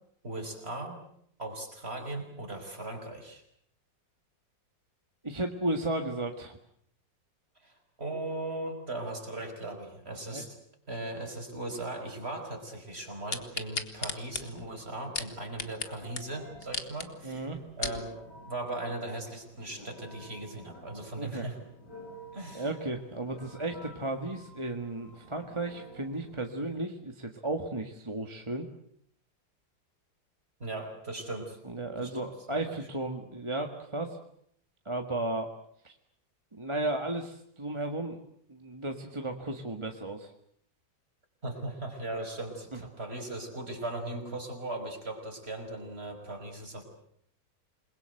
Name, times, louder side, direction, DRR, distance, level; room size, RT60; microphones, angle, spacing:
voice 1, 0.2-1.0 1.4-3.4 7.6-10.6 10.9-17.5 17.8-18.2 18.5-21.6 22.3-22.7 30.6-31.6 32.0-32.5 41.4-46.8, right 2 dB, 35° right, 3 dB, 5.5 m, -38 dB
voice 2, 5.2-6.6 10.3-10.4 17.2-17.6 21.2-21.4 22.5-28.7 31.7-34.2 34.9-35.5 35.8-35.9 36.5-38.2 38.5-40.3, right 2 dB, 15° right, 4 dB, 1.7 m, -34 dB
sound 1, 13.3-15.9 16.2-16.3 16.6-17.1 17.5-18.0 18.6-18.7, left 4 dB, 35° left, 1.7 m, -35 dB
Telephone, 15.5-26.6, equal, 65° left, 7.6 m, -51 dB
28.0 x 22.0 x 7.9 m, 0.68 s
omnidirectional pair, 1.9 m